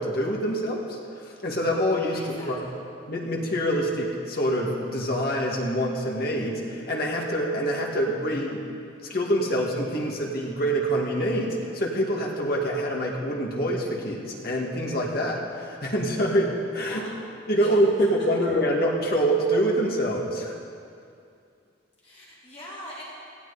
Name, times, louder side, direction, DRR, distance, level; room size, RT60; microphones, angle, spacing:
voice 1, 0.0-2.6 3.1-8.6 9.1-17.0 17.5-20.6, equal, 50° left, -1 dB, 2.1 m, -26 dB
voice 2, 2.2-2.8 16.9-17.2 17.6-17.7 22.0-23.0, left 1 dB, 30° left, -8 dB, 4.0 m, -42 dB
18.0 x 15.5 x 4.2 m, 2.4 s
head